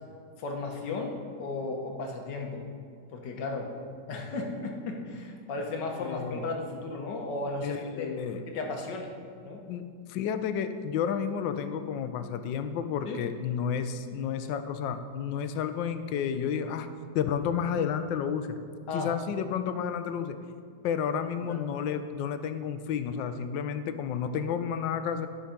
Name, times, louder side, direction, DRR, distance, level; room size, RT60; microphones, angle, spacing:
voice 1, 0.4-2.6 3.1-3.7 4.1-8.2 8.5-9.2 9.4-9.6 13.1-13.2 18.9-19.1 21.4-21.6, left 3 dB, 70° left, 2 dB, 1.7 m, -35 dB
voice 2, 6.0-6.4 7.6-8.4 9.7-16.9 17.1-18.6 18.9-20.4 20.8-25.3, left 7 dB, 85° left, 10 dB, 1.3 m, -31 dB
11.5 x 5.8 x 5.1 m, 2.2 s
omnidirectional pair, 1.9 m